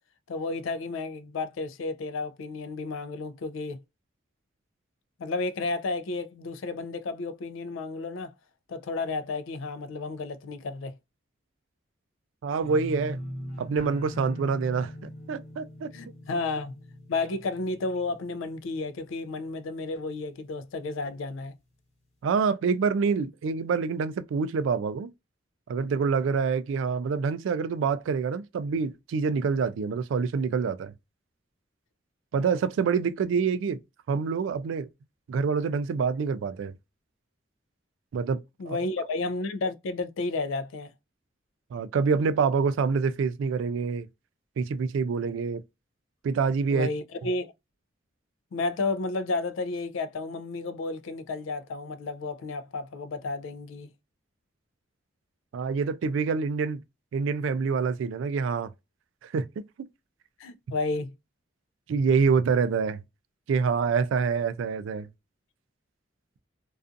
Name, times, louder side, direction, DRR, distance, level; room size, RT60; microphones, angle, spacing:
voice 1, 0.3-3.8 5.2-8.3 8.7-11.0 15.9-16.8 17.1-21.6 38.6-40.9 46.7-47.5 48.5-53.9 60.4-61.1, left 3 dB, 85° left, 0.4 m, -32 dB
voice 2, 12.4-13.2 13.6-15.9 22.2-25.1 25.7-30.9 32.3-33.8 34.1-34.9 35.3-36.7 38.1-38.8 41.7-44.1 44.6-45.6 46.2-46.9 55.5-56.8 57.1-58.7 59.2-59.5 59.8-59.9 61.9-63.0 63.5-65.1, right 5 dB, 80° right, 0.3 m, -26 dB
sound 1, 12.6-19.5 19.8-20.3 20.7-20.8, equal, 30° left, 0.9 m, -41 dB
2.4 x 2.3 x 2.4 m
head